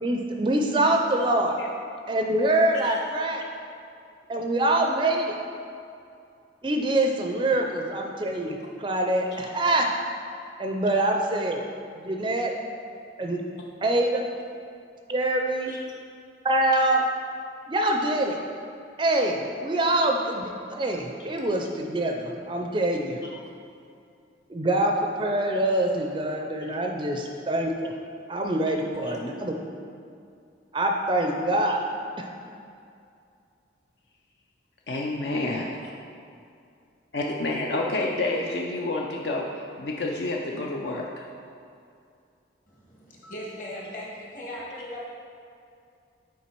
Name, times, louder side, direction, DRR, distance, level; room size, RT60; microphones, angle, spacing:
voice 1, 0.0-1.6 2.1-3.4 4.3-5.3 6.6-9.9 10.6-11.6 12.0-12.5 13.2-13.4 13.8-14.2 15.1-15.8 16.4-17.1 17.7-18.4 19.0-23.2 24.5-27.9 28.3-29.6 30.7-31.8 32.2-32.3, right 1 dB, 25° right, 2 dB, 0.4 m, -25 dB
voice 2, 34.9-35.8 37.1-41.2, left 2 dB, 60° left, -1 dB, 0.5 m, -29 dB
voice 3, 42.7-45.1, left 1 dB, 45° left, -4 dB, 1.5 m, -38 dB
7.1 x 4.5 x 4.5 m, 2.5 s
head